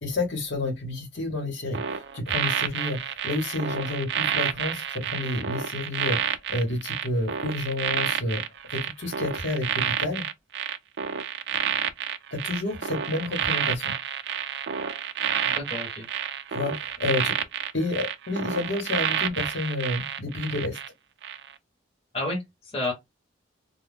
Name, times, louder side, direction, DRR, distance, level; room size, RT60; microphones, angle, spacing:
voice 1, 0.0-8.4 8.7-10.2 12.3-13.9 16.5-17.3 17.7-20.8, left 2 dB, 70° left, 1.1 m, -30 dB
sound 1, 1.7-20.9 21.2-21.5, right 9 dB, 60° right, 0.3 m, -29 dB
voice 2, 15.4-16.1 22.1-22.9, left 2 dB, 30° left, 1.0 m, -31 dB
2.3 x 2.2 x 3.4 m
head